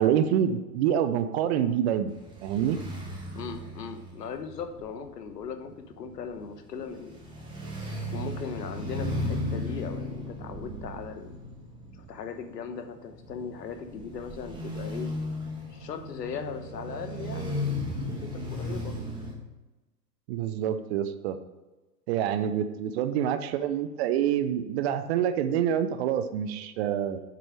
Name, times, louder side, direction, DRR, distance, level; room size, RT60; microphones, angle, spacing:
voice 1, 0.0-2.1 2.4-2.8 20.3-21.4 22.1-27.2, right 9 dB, 40° right, 10 dB, 0.7 m, -26 dB
sound 1, 2.1-19.3, left 1 dB, 10° right, 1.9 m, -36 dB
voice 2, 3.3-7.2 8.1-11.4 12.0-15.1 15.7-18.9, left 6 dB, 70° left, 7 dB, 1.3 m, -38 dB
7.8 x 6.1 x 4.9 m, 1.1 s
figure-of-eight pair, 105°, 50 cm